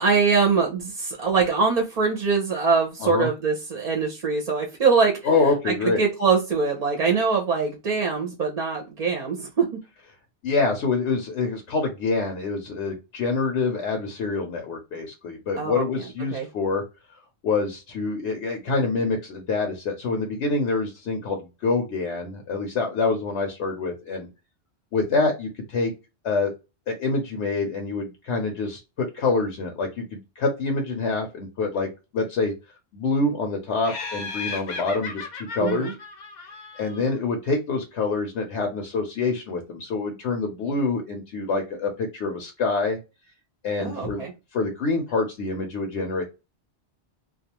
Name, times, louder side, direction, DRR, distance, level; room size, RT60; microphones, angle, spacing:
voice 1, 0.0-5.2 5.6-9.8 15.6-15.8 16.3-16.5 35.6-35.9 43.8-44.3, right 5 dB, 50° right, 2 dB, 0.6 m, -23 dB
voice 2, 5.2-6.0 10.4-16.8 17.4-24.3 24.9-25.9 26.2-26.5 26.9-32.5 32.9-35.9 36.8-43.0 43.6-44.2 44.5-46.2, left 3 dB, 80° left, 3 dB, 1.0 m, -26 dB
Laughter, 33.8-37.2, left 4 dB, 50° left, 0.6 m, -35 dB
2.3 x 2.3 x 2.8 m, 0.27 s
omnidirectional pair, 1.1 m